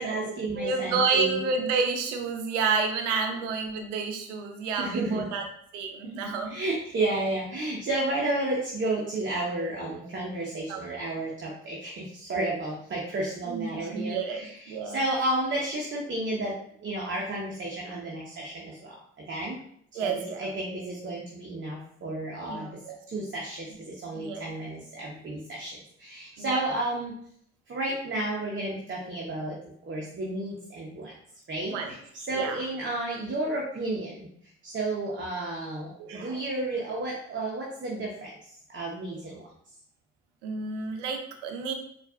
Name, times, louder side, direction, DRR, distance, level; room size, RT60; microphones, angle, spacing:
voice 1, 0.0-1.4 4.8-5.2 6.2-16.5 16.8-18.9 19.3-19.6 19.9-22.7 23.1-27.1 27.7-29.6 29.8-31.1 31.5-31.8 32.1-34.3 34.6-39.5, right 2 dB, 30° right, -3 dB, 0.8 m, -32 dB
voice 2, 0.6-5.5 5.7-6.6 10.7-11.0 13.5-15.0 19.9-20.5 22.5-23.0 24.1-24.5 26.4-26.6 31.7-32.6 36.0-36.4 40.4-41.7, right 4 dB, 80° right, 5 dB, 0.6 m, -30 dB
4.4 x 2.5 x 2.4 m, 0.67 s
figure-of-eight pair, 45°, 35 cm